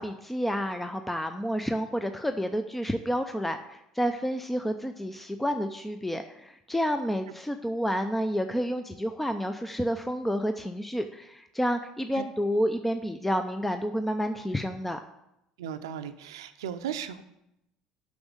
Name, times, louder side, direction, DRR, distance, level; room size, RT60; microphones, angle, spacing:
voice 1, 0.0-15.0, equal, 5° left, 7 dB, 0.6 m, -30 dB
voice 2, 15.6-17.2, right 9 dB, 80° right, 10 dB, 0.6 m, -36 dB
6.2 x 6.2 x 7.2 m, 0.85 s
hypercardioid pair, 70°, 2 cm